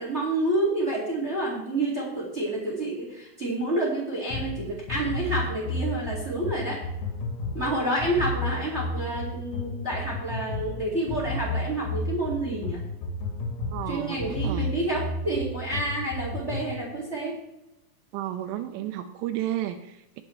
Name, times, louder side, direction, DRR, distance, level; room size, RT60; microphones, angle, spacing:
voice 1, 0.0-6.8 7.5-12.8 13.9-17.3, right 1 dB, 35° right, -3 dB, 1.0 m, -29 dB
sound 1, 4.3-16.8, left 2 dB, 85° left, 4.5 m, -32 dB
voice 2, 13.7-14.7 18.1-20.2, right 12 dB, 85° right, 7 dB, 2.5 m, -32 dB
17.5 x 7.4 x 3.2 m, 0.92 s
omnidirectional pair, 5.6 m